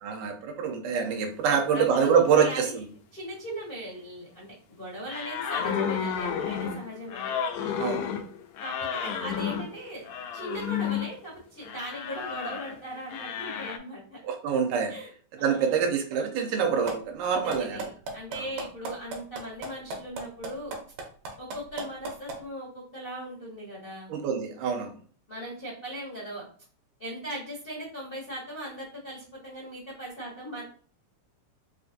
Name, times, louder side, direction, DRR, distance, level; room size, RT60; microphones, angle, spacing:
voice 1, 0.0-2.9 7.8-8.1 14.2-14.9 15.4-17.9 18.4-18.5 24.1-24.9, right 6 dB, 90° right, 3 dB, 2.2 m, -26 dB
voice 2, 1.4-2.8 3.1-7.4 8.6-10.1 10.3-14.2 14.9-15.1 15.4-15.8 17.3-20.7 21.4-24.1 25.3-26.4 27.0-30.6, equal, 70° left, -7 dB, 0.5 m, -39 dB
sound 1, 5.1-11.1 11.6-12.8 13.1-13.8, left 7 dB, 85° left, 2.0 m, -31 dB
sound 2, 16.9-17.0 17.2-22.4, right 3 dB, 70° right, 1.8 m, -34 dB
5.0 x 2.5 x 2.6 m, 0.43 s
omnidirectional pair, 3.5 m